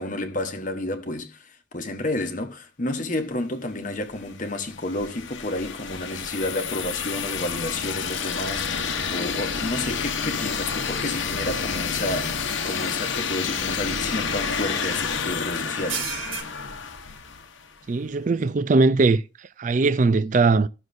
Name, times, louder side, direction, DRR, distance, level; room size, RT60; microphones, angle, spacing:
voice 1, 0.0-12.4 12.6-16.2, left 1 dB, 40° left, 1.1 m, -30 dB
sound 1, 4.1-17.8, left 6 dB, 75° left, 1.0 m, -29 dB
sound 2, 11.7-11.8 12.3-12.4 14.3-14.5 15.6-16.4, right 6 dB, 85° right, 2.0 m, -32 dB
voice 2, 17.9-19.2 19.6-20.7, right 3 dB, 40° right, 0.4 m, -20 dB
17.5 x 6.3 x 2.6 m
head